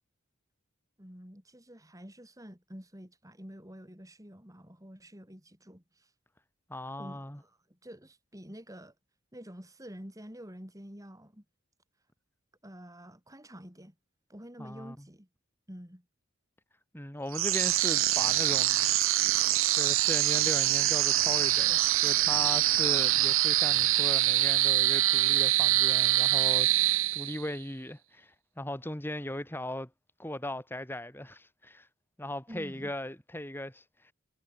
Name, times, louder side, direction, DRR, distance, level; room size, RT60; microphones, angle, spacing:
voice 1, 1.0-6.1 7.0-8.9 9.3-11.4 12.6-14.0 14.3-15.3 15.7-16.1 32.5-32.9, equal, 15° right, 5.1 m, -48 dB
voice 2, 6.7-7.4 14.6-15.0 16.9-18.9 19.7-29.9 30.2-31.9 32.2-34.1, left 1 dB, 10° left, 3.6 m, -38 dB
sound 1, 17.3-27.6, right 15 dB, 70° right, 0.8 m, -25 dB
head